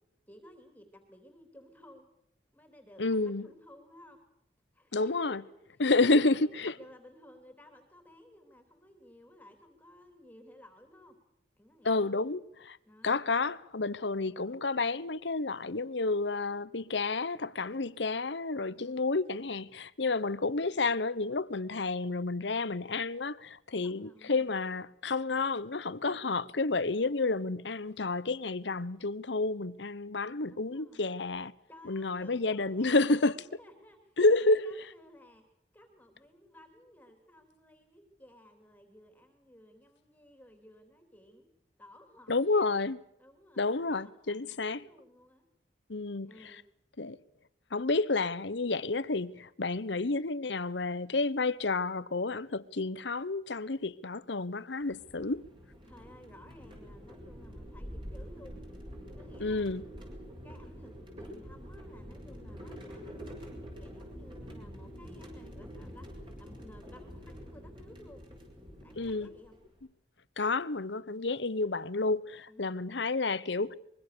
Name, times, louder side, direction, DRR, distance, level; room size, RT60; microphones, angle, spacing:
voice 1, 0.3-2.1 2.5-4.2 4.7-5.5 6.3-11.2 11.6-12.1 12.8-13.2 18.7-19.2 20.0-20.3 23.8-24.4 26.0-26.3 30.5-31.0 31.7-35.4 35.7-41.5 41.8-42.7 43.2-45.4 46.2-46.6 55.9-58.6 59.1-59.8 60.4-66.1 66.4-68.2 68.8-69.5 71.0-71.3 72.5-72.8, left 1 dB, 10° left, 3.5 m, -56 dB
voice 2, 3.0-3.5 4.9-5.4 5.8-6.7 11.8-12.8 13.0-31.5 31.9-33.3 34.2-34.6 42.3-43.0 43.6-44.8 45.9-46.3 47.0-47.2 47.7-55.4 59.4-59.8 69.0-69.3 70.4-73.7, left 3 dB, 75° left, 1.0 m, -30 dB
sound 1, 54.8-69.8, equal, 25° right, 7.1 m, -46 dB
24.5 x 23.0 x 6.9 m
head